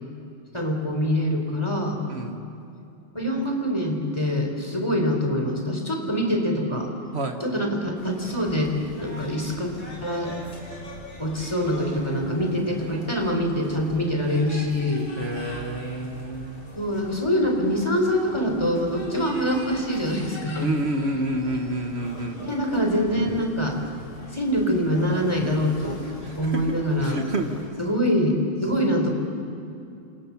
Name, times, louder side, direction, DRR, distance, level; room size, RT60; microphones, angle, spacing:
voice 1, 0.5-2.0 3.1-6.9 7.4-8.7 9.0-9.7 10.0-10.3 11.2-15.1 16.7-20.7 22.4-23.8 24.3-26.0 26.3-27.2 27.8-29.1, equal, 10° left, 2 dB, 3.5 m, -24 dB
voice 2, 2.1-2.4 7.1-7.4 15.1-16.7 20.6-22.4 26.2-26.6 27.0-27.7, right 2 dB, 85° right, 4 dB, 0.5 m, -29 dB
sound 1, 8.0-27.7, left 1 dB, 50° left, 5.6 m, -43 dB
28.0 x 28.0 x 7.2 m, 2.7 s
omnidirectional pair, 3.3 m